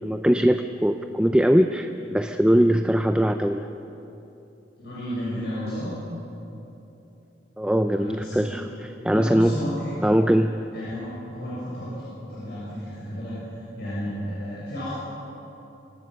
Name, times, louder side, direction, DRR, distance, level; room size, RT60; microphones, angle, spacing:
voice 1, 0.0-3.7 7.6-9.5 10.0-10.5, equal, 5° right, 7 dB, 0.5 m, -21 dB
voice 2, 4.8-5.9 7.9-8.7 9.1-9.9 10.7-14.9, equal, 65° left, -9 dB, 6.7 m, -33 dB
25.0 x 18.0 x 6.3 m, 3.0 s
head